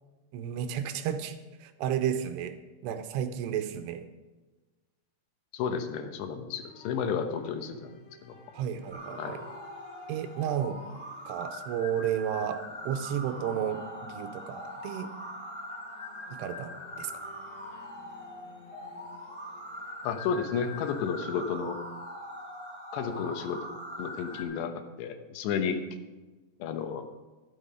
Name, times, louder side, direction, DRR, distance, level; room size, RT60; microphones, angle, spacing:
voice 1, 0.3-2.6 2.8-4.1 8.5-9.4 10.1-10.8 11.3-15.1 16.4-16.7 17.0-17.1, right 9 dB, 85° right, 9 dB, 2.8 m, -32 dB
voice 2, 5.5-7.9 8.2-8.4 9.2-9.4 20.0-21.8 22.9-23.7 24.0-25.8 26.6-27.1, left 6 dB, 85° left, 7 dB, 3.2 m, -32 dB
sound 1, 6.6-22.1, left 2 dB, 65° left, 3.3 m, -55 dB
sound 2, 8.9-24.4, left 1 dB, 5° right, 2.7 m, -42 dB
12.0 x 11.0 x 5.0 m, 1.2 s
omnidirectional pair, 4.9 m